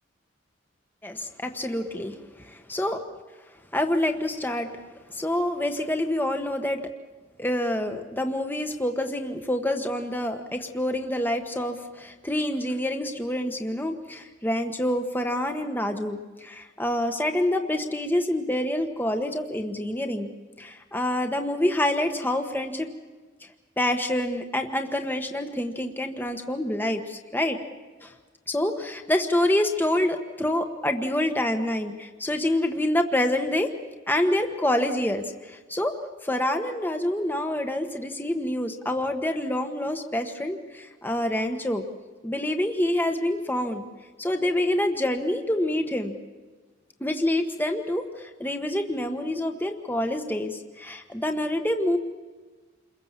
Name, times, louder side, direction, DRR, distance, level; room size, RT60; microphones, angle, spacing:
voice 1, 1.0-3.0 3.7-4.7 5.1-6.8 7.4-20.3 20.6-22.9 23.8-27.6 28.0-28.1 28.5-33.7 34.1-35.9 36.2-41.8 42.2-43.9 44.2-46.2 47.0-52.0, left 1 dB, 10° left, 5 dB, 1.3 m, -27 dB
28.5 x 22.0 x 7.4 m, 1.4 s
head